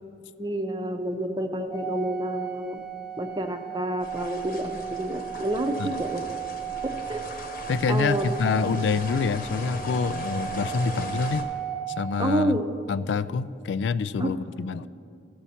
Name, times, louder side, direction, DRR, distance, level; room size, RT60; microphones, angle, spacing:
voice 1, 0.4-2.8 3.2-6.2 6.8-7.2 7.9-8.3 12.2-12.7 14.2-14.3, right 1 dB, 25° right, 6 dB, 0.7 m, -29 dB
Organ, 1.7-12.5, right 10 dB, 15° left, 1.1 m, -35 dB
sound 1, 4.0-11.4, left 2 dB, 55° left, 1.1 m, -39 dB
voice 2, 7.7-11.4 12.0-12.6 12.9-14.9, left 5 dB, 75° left, 17 dB, 0.3 m, -26 dB
15.5 x 7.0 x 4.2 m, 2.5 s
head